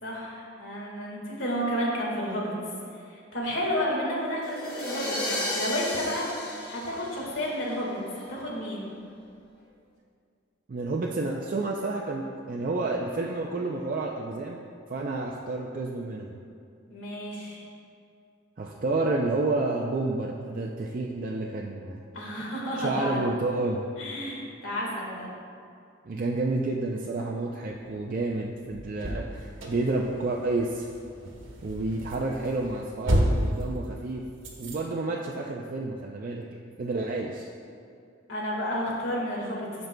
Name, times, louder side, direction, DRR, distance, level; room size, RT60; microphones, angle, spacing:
voice 1, 0.0-2.5 3.1-6.3 6.7-8.9 16.9-17.6 22.1-23.2 24.0-25.3 38.3-39.9, equal, 90° left, -3 dB, 1.7 m, -31 dB
sound 1, 4.4-7.7, left 1 dB, 55° left, 1.2 m, -33 dB
voice 2, 10.7-14.6 14.9-16.4 18.6-22.0 22.8-23.8 26.0-30.9 31.6-34.2 34.6-36.4 36.8-37.5, right 2 dB, 45° right, -1 dB, 0.4 m, -30 dB
sound 2, 27.7-34.8, equal, 90° right, 1.2 m, -31 dB
14.0 x 5.2 x 2.2 m, 2.4 s
head